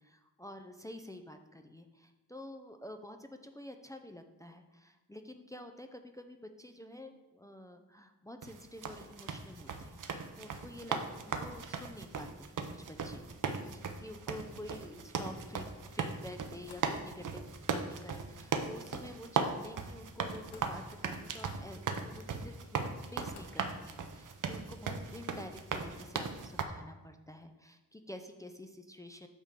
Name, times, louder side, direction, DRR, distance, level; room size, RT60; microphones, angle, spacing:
voice 1, 0.0-11.0 11.2-13.2 13.6-17.4 17.7-29.3, left 1 dB, 10° left, 6 dB, 0.5 m, -49 dB
sound 1, 8.4-26.6, right 5 dB, 50° right, 0.8 m, -38 dB
Slam, 16.3-17.0 18.4-18.8 19.9-20.0 20.2-20.8 21.1-21.8 22.6-22.7 23.1-23.7, left 4 dB, 75° left, 1.2 m, -58 dB
8.3 x 3.7 x 6.6 m, 1.1 s
wide cardioid pair, 115°, 39 cm